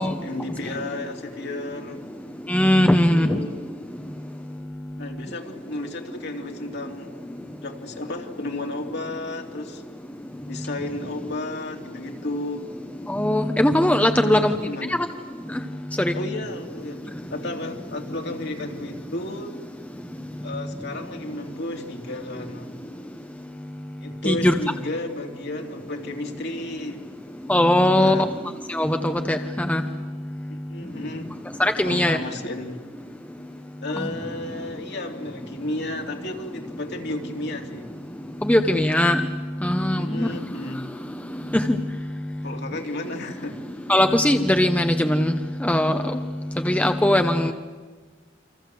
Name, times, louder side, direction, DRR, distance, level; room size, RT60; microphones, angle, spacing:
voice 1, 0.0-2.0 3.1-3.5 5.0-7.2 7.6-9.8 10.5-12.7 14.2-15.0 16.1-19.6 20.4-22.7 24.0-27.1 28.0-28.3 30.5-31.4 31.8-32.8 33.8-37.9 40.0-40.9 42.4-43.6, left 2 dB, 60° left, 3 dB, 3.0 m, -33 dB
voice 2, 2.5-3.4 13.1-14.5 16.0-16.1 24.2-24.5 27.5-28.2 28.7-29.8 31.6-32.2 38.4-39.2 39.6-40.3 41.7-41.8 43.9-45.3 45.6-46.0 46.6-47.5, left 1 dB, 5° left, 6 dB, 1.0 m, -19 dB
29.0 x 25.0 x 7.8 m, 1.4 s
head